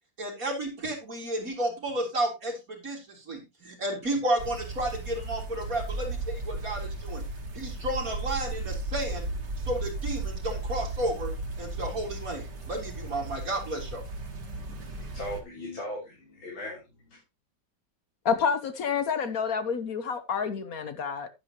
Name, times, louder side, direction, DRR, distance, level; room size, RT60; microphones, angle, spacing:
voice 1, 0.2-7.2 7.5-9.3 9.6-11.3 11.6-14.0, right 1 dB, 45° right, 4.4 m, -32 dB
sound 1, 4.4-15.4, right 2 dB, 60° right, 2.7 m, -35 dB
voice 2, 14.6-17.2, left 1 dB, 80° left, 4.3 m, -39 dB
voice 3, 18.2-21.3, left 6 dB, 55° left, 1.3 m, -28 dB
11.0 x 10.5 x 2.9 m
omnidirectional pair, 2.1 m